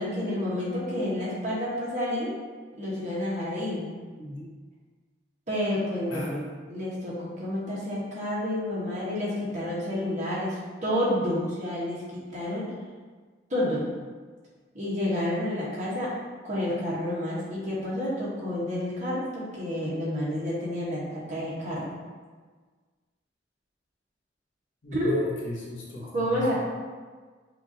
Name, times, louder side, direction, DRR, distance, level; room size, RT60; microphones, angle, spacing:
voice 1, 0.0-2.3 2.8-3.9 5.5-6.3 6.7-12.7 13.5-13.8 14.7-16.1 16.4-21.9 24.9-25.2 26.1-26.5, left 1 dB, 40° right, -7 dB, 1.3 m, -29 dB
voice 2, 4.1-4.5 6.1-6.5 24.8-26.0 26.3-26.4, left 2 dB, 80° left, -4 dB, 1.0 m, -36 dB
5.8 x 2.6 x 2.8 m, 1.4 s
head